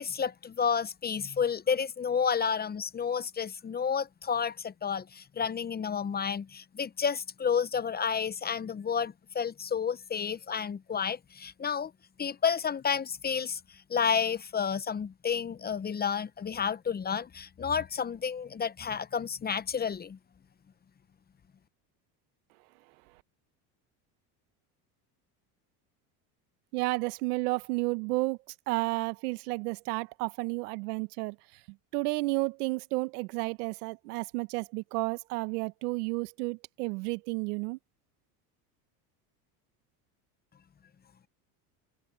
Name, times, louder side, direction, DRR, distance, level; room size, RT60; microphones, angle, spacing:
voice 1, 0.0-11.9 12.2-13.6 13.9-20.2, left 6 dB, 20° left, 0.8 m, -31 dB
voice 2, 26.7-28.4 28.7-31.4 31.9-37.8, right 24 dB, 85° right, 1.1 m, -31 dB
supercardioid pair, 105°, 44 cm